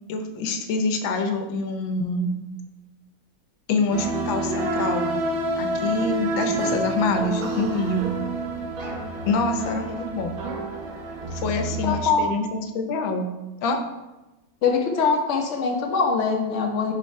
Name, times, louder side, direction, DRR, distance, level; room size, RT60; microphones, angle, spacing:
voice 1, 0.1-2.4 3.7-5.1 5.6-8.1 9.3-10.4 11.3-12.4 12.7-13.3 13.6-13.8, left 3 dB, 75° left, 6 dB, 1.5 m, -26 dB
sound 1, 3.9-12.0, right 1 dB, 85° right, 1.9 m, -28 dB
voice 2, 11.8-12.3 14.6-16.9, left 5 dB, 45° left, 1 dB, 1.0 m, -22 dB
5.0 x 4.7 x 5.3 m, 1.1 s
omnidirectional pair, 2.2 m